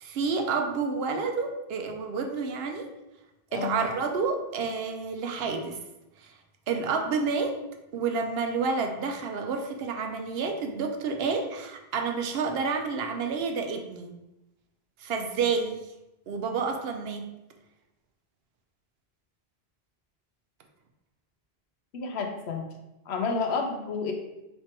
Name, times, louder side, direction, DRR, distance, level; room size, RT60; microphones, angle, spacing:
voice 1, 0.0-2.9 3.5-5.8 6.2-6.3 6.7-7.5 7.9-14.1 15.0-15.8 16.3-17.2, right 4 dB, 75° right, 4 dB, 0.8 m, -29 dB
voice 2, 21.9-22.6 23.1-24.1, left 4 dB, 90° left, 3 dB, 1.0 m, -30 dB
3.3 x 2.9 x 4.4 m, 0.94 s
omnidirectional pair, 1.1 m